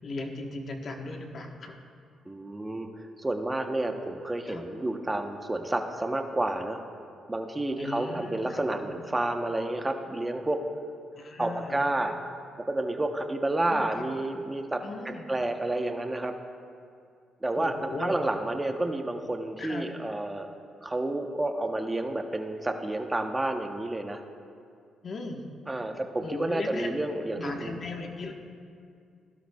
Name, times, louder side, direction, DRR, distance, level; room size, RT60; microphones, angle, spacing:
voice 1, 0.0-1.7 4.5-4.9 7.8-9.0 11.1-11.9 13.7-14.0 14.8-15.3 17.6-18.2 19.6-19.9 25.0-25.8 26.2-27.0 27.4-28.3, left 2 dB, 50° left, 2 dB, 1.3 m, -38 dB
voice 2, 2.3-2.9 3.2-6.8 7.3-10.6 11.4-12.2 12.7-16.3 17.4-20.5 20.8-24.2 25.7-27.8, right 2 dB, 15° right, 4 dB, 0.9 m, -30 dB
17.0 x 12.0 x 2.4 m, 2.3 s
cardioid pair, 90°, 0 cm